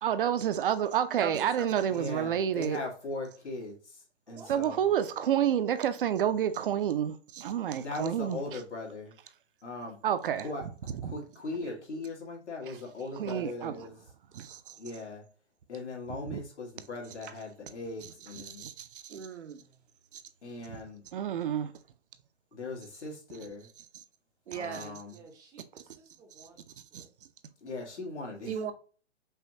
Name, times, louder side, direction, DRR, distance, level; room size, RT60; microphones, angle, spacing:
voice 1, 0.0-2.8 4.5-8.4 10.0-10.5 11.0-11.1 13.2-13.7 14.3-14.8 16.3-16.4 18.5-19.2 20.1-20.2 21.1-21.7 24.7-24.8 26.4-26.5, right 9 dB, 55° right, 0.6 m, -29 dB
voice 2, 1.2-1.7 19.1-19.6 24.5-25.0 28.4-28.7, right 7 dB, 80° right, 0.9 m, -37 dB
voice 3, 1.9-4.9 7.8-9.1 9.6-10.0 10.4-14.0 14.8-15.3 15.7-18.7 20.4-21.0 22.5-23.7 24.5-25.2 27.6-28.6, left 3 dB, 90° left, 2.1 m, -39 dB
voice 4, 4.3-5.6 11.6-11.8 13.0-13.1 13.4-14.0 14.7-14.8 19.6-19.7 25.1-26.6, right 3 dB, 10° right, 0.6 m, -54 dB
5.6 x 2.5 x 2.7 m
hypercardioid pair, 145°, 33 cm